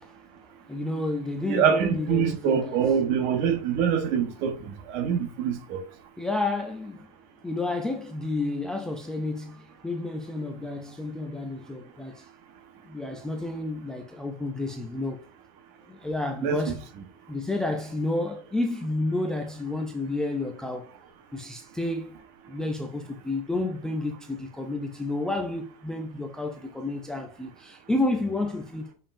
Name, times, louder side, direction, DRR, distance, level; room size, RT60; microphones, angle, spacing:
voice 1, 0.7-2.8 6.2-7.0 7.4-12.3 12.9-15.2 15.9-16.8 17.3-20.9 21.3-22.2 22.5-28.9, left 2 dB, 5° left, 0.3 m, -30 dB
voice 2, 1.5-5.9 16.4-16.7, right 7 dB, 45° right, 1.1 m, -25 dB
6.8 x 5.5 x 2.5 m
supercardioid pair, 170°, 20 cm